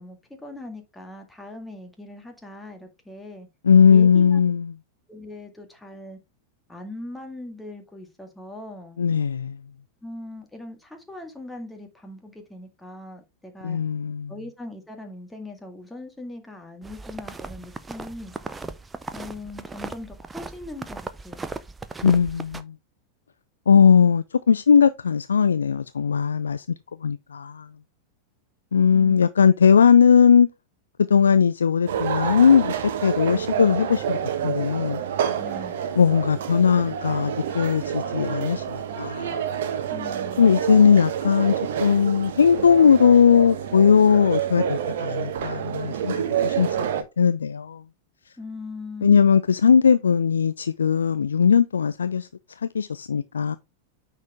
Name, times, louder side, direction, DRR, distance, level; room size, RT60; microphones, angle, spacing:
voice 1, 0.0-3.5 3.9-4.4 5.1-6.2 6.7-9.0 10.0-13.8 14.3-18.3 19.1-21.4 28.9-29.2 35.4-35.8 39.9-40.5 48.4-49.2, left 2 dB, 5° left, 1.9 m, -40 dB
voice 2, 3.6-4.7 9.0-9.6 13.6-14.3 22.0-22.7 23.7-26.7 27.0-27.7 28.7-30.5 31.0-34.2 34.4-35.0 36.0-39.4 40.4-46.8 47.2-47.8 49.0-52.3 52.6-53.6, left 6 dB, 70° left, 0.4 m, -19 dB
sound 1, 16.8-22.6, right 3 dB, 15° right, 0.6 m, -37 dB
sound 2, 31.9-47.0, right 8 dB, 55° right, 1.1 m, -28 dB
9.4 x 4.5 x 3.4 m
figure-of-eight pair, 90°, 0 cm